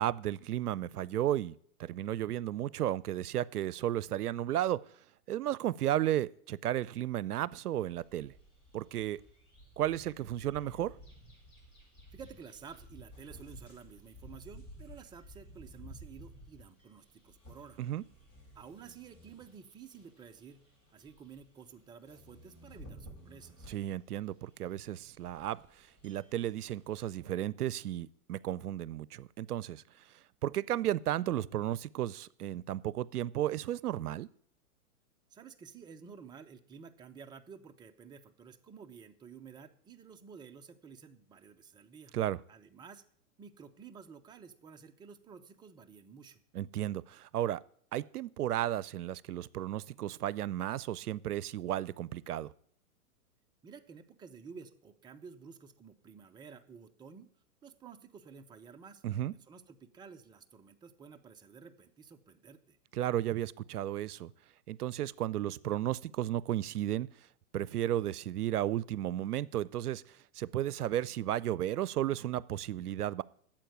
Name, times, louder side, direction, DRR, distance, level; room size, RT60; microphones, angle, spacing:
voice 1, 0.0-1.5 1.8-4.8 5.3-8.3 8.7-9.2 9.8-10.9 17.8-18.0 23.7-25.6 26.0-29.8 30.4-34.3 42.1-42.4 46.5-47.6 47.9-52.5 59.0-59.3 62.9-64.3 64.7-67.1 67.5-73.2, right 12 dB, 85° right, 21 dB, 0.6 m, -33 dB
sound 1, 7.7-27.2, equal, 25° left, 6.9 m, -55 dB
voice 2, 12.1-17.8 18.5-20.6 20.9-23.7 35.3-42.1 42.5-43.0 43.4-46.4 53.6-57.3 57.6-59.0 59.3-62.8, right 6 dB, 10° right, 5 dB, 0.6 m, -52 dB
9.1 x 7.5 x 9.2 m, 0.63 s
hypercardioid pair, 120°, 45 cm